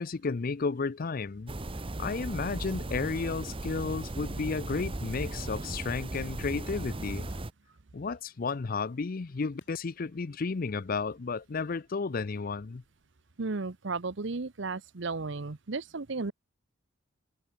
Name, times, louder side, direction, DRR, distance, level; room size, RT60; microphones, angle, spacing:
voice 1, 0.0-1.5 2.0-7.3 7.9-12.8, left 4 dB, 45° left, 0.5 m, -33 dB
sound 1, 1.0-1.2 2.4-2.6 3.7-3.9 5.0-5.2 6.1-6.4 7.3-7.6 8.5-8.7 9.6-9.8, left 2 dB, 65° left, 2.8 m, -62 dB
sound 2, 1.5-7.5, right 1 dB, 30° right, 1.0 m, -37 dB
voice 2, 13.4-16.3, right 3 dB, 65° right, 0.9 m, -34 dB
head